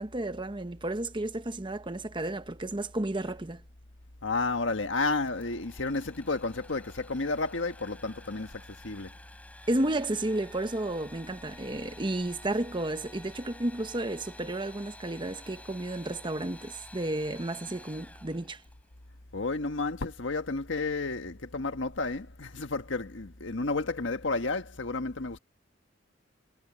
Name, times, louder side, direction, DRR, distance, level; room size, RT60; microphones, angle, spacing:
voice 1, 0.0-3.6 9.7-18.6, right 1 dB, 25° right, 1.0 m, -32 dB
voice 2, 4.2-9.1 19.3-25.4, left 3 dB, 80° left, 1.5 m, -31 dB
Engine / Sawing, 5.3-18.9, left 1 dB, 10° left, 6.4 m, -51 dB
head